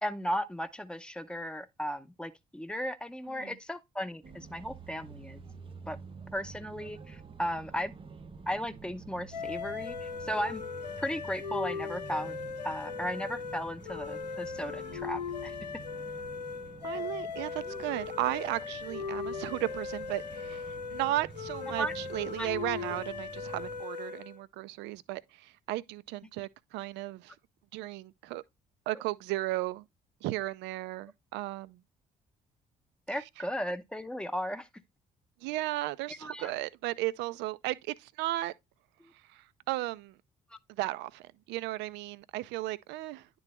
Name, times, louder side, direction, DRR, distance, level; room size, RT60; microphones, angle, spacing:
voice 1, 0.0-5.4 5.9-6.0 6.3-7.9 8.5-10.6 11.0-12.4 12.6-15.5 17.7-17.8 21.8-21.9 22.4-22.5 33.1-34.7 36.1-36.5 40.5-40.6, equal, 5° left, 0.8 m, -36 dB
sound 1, 4.2-23.8, right 5 dB, 25° right, 0.7 m, -49 dB
sound 2, 9.3-24.4, left 5 dB, 90° left, 0.4 m, -39 dB
voice 2, 16.8-27.4 27.7-28.4 28.9-29.8 30.2-31.8 33.1-33.2 35.4-38.5 39.3-40.1 40.7-43.3, right 17 dB, 60° right, 0.5 m, -35 dB
10.5 x 3.8 x 3.1 m
figure-of-eight pair, 45°, 21 cm